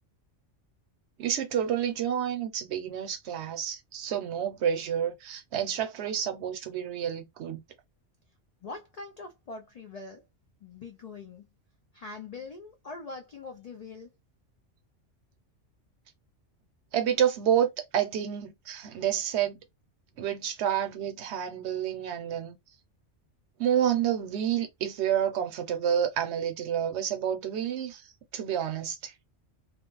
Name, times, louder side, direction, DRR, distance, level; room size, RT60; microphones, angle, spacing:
voice 1, 1.2-7.6 16.9-19.6 20.2-22.6 23.6-28.0 28.3-29.1, right 9 dB, 70° right, 0.8 m, -29 dB
voice 2, 8.6-10.3 10.6-11.5 11.9-14.1, left 3 dB, 80° left, 0.3 m, -43 dB
2.4 x 2.1 x 3.0 m
omnidirectional pair, 1.2 m